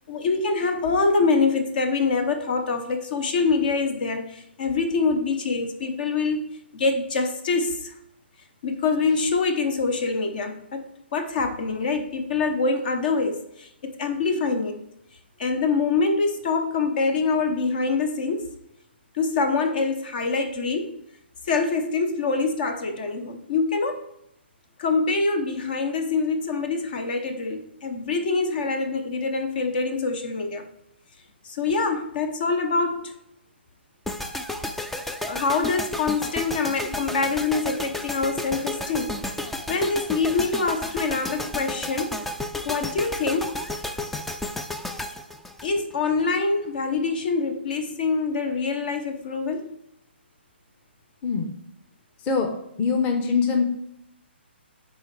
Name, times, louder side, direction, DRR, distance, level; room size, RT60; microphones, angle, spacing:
voice 1, 0.1-6.4 6.7-7.9 8.6-14.8 15.4-18.6 19.1-21.0 21.4-24.0 24.8-30.7 31.4-33.1 35.3-39.2 39.7-42.2 42.6-43.6 45.6-49.8, left 4 dB, 50° left, 7 dB, 0.9 m, -25 dB
sound 1, 34.0-46.2, left 1 dB, 5° left, 0.3 m, -32 dB
voice 2, 51.2-51.5 52.2-52.5 52.8-53.6, left 5 dB, 25° left, 4 dB, 0.9 m, -23 dB
10.0 x 4.2 x 3.3 m, 0.78 s
figure-of-eight pair, 135°, 6 cm